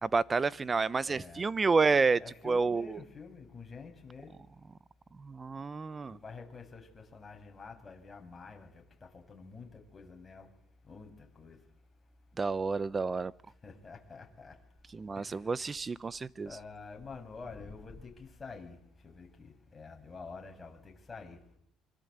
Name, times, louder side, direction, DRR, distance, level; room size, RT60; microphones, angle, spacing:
voice 1, 0.0-3.0 5.2-6.2 12.4-13.3 14.9-16.6, right 4 dB, 25° right, 0.9 m, -29 dB
voice 2, 1.0-1.4 2.2-4.3 6.1-10.5 10.9-11.6 13.6-14.6 15.1-15.4 16.4-18.8 19.0-21.4, left 4 dB, 25° left, 7.6 m, -48 dB
25.5 x 23.5 x 8.1 m
supercardioid pair, 90°, 0 cm